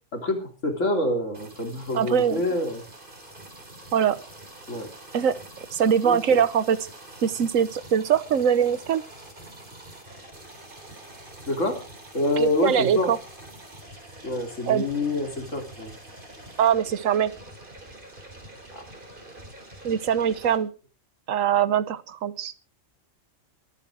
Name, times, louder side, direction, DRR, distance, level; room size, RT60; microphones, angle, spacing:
voice 1, 0.1-2.8 4.7-4.9 6.0-6.2 11.5-11.8 12.1-13.1 14.2-15.9 18.7-18.8, left 2 dB, 70° left, 4 dB, 3.6 m, -26 dB
sound 1, 1.3-20.6, right 1 dB, 40° right, 3.7 m, -45 dB
voice 2, 1.9-2.4 3.9-4.2 5.1-5.4 5.7-6.9 7.2-9.0 12.4-13.2 14.7-14.8 16.6-17.3 19.8-20.7 21.3-22.5, right 8 dB, 85° right, 16 dB, 1.3 m, -22 dB
22.5 x 8.9 x 4.9 m, 0.37 s
omnidirectional pair, 1.3 m